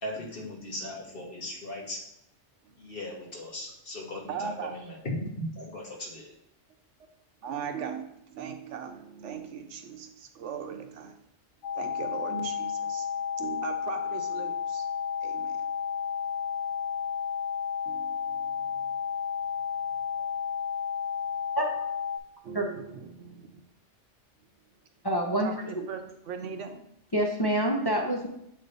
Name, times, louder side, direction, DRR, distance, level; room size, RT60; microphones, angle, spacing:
voice 1, 0.0-2.0 2.8-6.3, left 1 dB, 50° left, -3 dB, 1.6 m, -38 dB
voice 2, 4.3-4.7 7.4-11.2 11.7-13.1 13.4-14.8 15.2-15.6 17.9-18.9 20.1-20.3 22.4-23.6 25.4-26.8, right 6 dB, 85° right, 6 dB, 1.0 m, -39 dB
sound 1, 11.6-22.2, left 7 dB, 80° left, 1.0 m, -32 dB
voice 3, 25.0-25.5 27.1-28.3, right 1 dB, 25° left, -1 dB, 0.6 m, -26 dB
7.4 x 3.3 x 3.9 m, 0.74 s
omnidirectional pair, 1.2 m